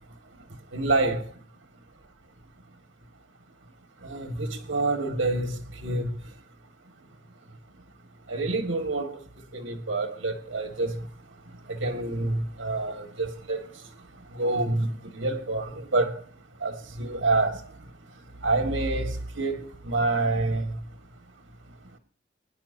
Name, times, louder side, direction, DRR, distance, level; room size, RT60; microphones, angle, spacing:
voice 1, 0.7-1.2 4.0-5.6 5.8-6.1 8.3-9.1 9.5-10.9 11.7-13.6 14.4-14.9 15.1-16.2 16.6-17.6 18.4-20.7, right 2 dB, 80° right, 1.7 m, -27 dB
22.5 x 10.5 x 2.7 m
head